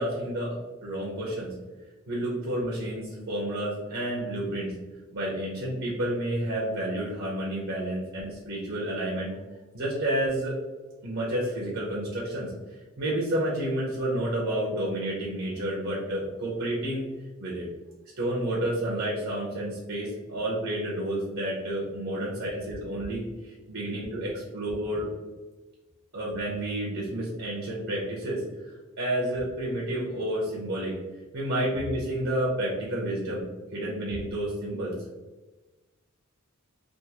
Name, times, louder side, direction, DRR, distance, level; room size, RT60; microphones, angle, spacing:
voice 1, 0.0-1.5 2.1-4.7 5.1-9.3 9.7-10.5 11.0-12.5 13.0-17.1 17.4-17.7 18.2-25.1 26.1-28.4 29.0-30.9 31.3-33.4 33.7-35.0, right 1 dB, 65° right, -4 dB, 0.8 m, -30 dB
3.6 x 2.5 x 2.8 m, 1.2 s
head